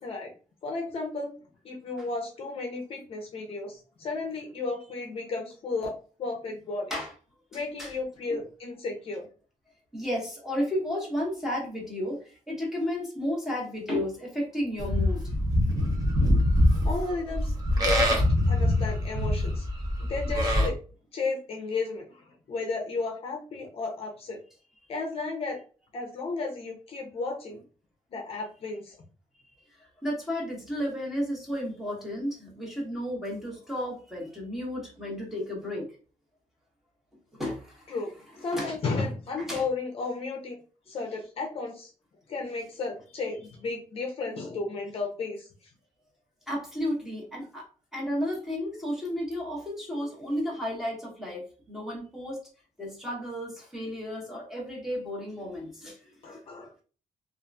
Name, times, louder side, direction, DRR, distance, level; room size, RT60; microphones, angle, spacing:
voice 1, 0.0-0.3 0.6-1.3 1.6-5.9 6.2-6.9 7.5-9.3 16.8-18.2 18.5-19.7 20.0-20.8 21.1-24.4 24.9-25.6 25.9-27.6 28.1-29.0 37.9-38.1 38.4-40.6 40.9-41.9 42.3-45.5 56.2-56.8, left 3 dB, 45° left, 1 dB, 0.6 m, -33 dB
voice 2, 9.9-15.2 29.8-35.9 37.3-38.0 38.5-38.7 39.4-39.6 46.5-52.4 52.8-56.4, equal, 5° right, -3 dB, 0.9 m, -33 dB
Livestock farm animals working animals, 14.8-20.7, left 1 dB, 25° right, 0.7 m, -24 dB
2.8 x 2.4 x 2.3 m, 0.37 s
wide cardioid pair, 175°, 13 cm